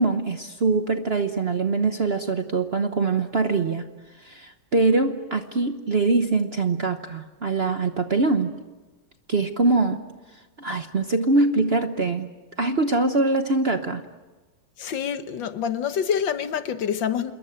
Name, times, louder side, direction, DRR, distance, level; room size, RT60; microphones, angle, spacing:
voice 1, 0.0-3.9 4.2-8.6 9.3-10.0 10.6-12.3 12.6-14.0, right 3 dB, 40° right, 7 dB, 1.0 m, -23 dB
voice 2, 14.8-17.3, left 8 dB, 70° left, 11 dB, 1.8 m, -26 dB
27.5 x 21.5 x 8.9 m, 1.2 s
omnidirectional pair, 2.2 m